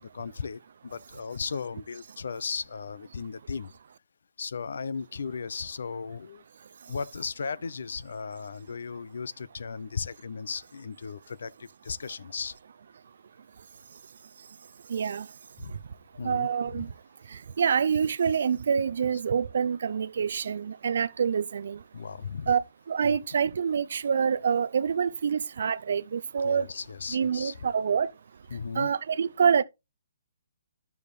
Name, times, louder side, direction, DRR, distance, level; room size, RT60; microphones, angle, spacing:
voice 1, 0.0-3.7 4.4-6.4 6.9-12.6 15.6-15.8 16.2-16.9 21.9-22.5 26.4-27.6 28.5-28.9, left 5 dB, 60° left, 0.5 m, -36 dB
voice 2, 14.9-15.3 16.2-16.9 17.6-21.8 22.5-22.6 22.9-26.7 27.1-28.1 28.8-29.6, right 7 dB, 45° right, 0.5 m, -26 dB
11.5 x 7.0 x 3.2 m
hypercardioid pair, 180°, 0 cm